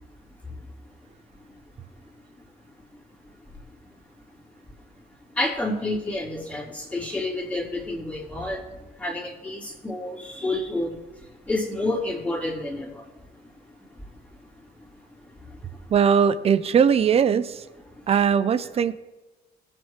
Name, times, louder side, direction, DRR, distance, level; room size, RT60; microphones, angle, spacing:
voice 1, 5.3-8.6 9.0-11.0 11.4-13.1 15.5-15.6, left 2 dB, 10° left, -4 dB, 3.4 m, -29 dB
voice 2, 15.9-17.7 18.1-18.9, right 7 dB, 35° right, 14 dB, 0.6 m, -20 dB
19.0 x 7.5 x 3.3 m, 1.1 s
cardioid pair, 110°, 17 cm